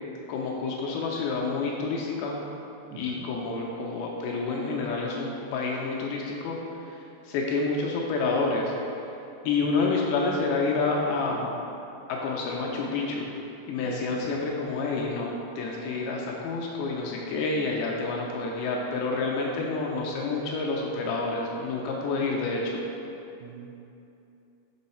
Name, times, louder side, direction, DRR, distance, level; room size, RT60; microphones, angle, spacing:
voice 1, 0.3-2.4 3.0-6.6 6.9-7.0 7.2-8.7 9.5-11.6 12.1-13.3 13.7-22.8, left 3 dB, 80° left, -1 dB, 2.3 m, -28 dB
voice 2, 2.9-3.3 13.8-14.2 23.4-23.8, right 7 dB, 90° right, 2 dB, 2.6 m, -41 dB
6.9 x 3.9 x 4.2 m, 2.8 s
omnidirectional pair, 4.6 m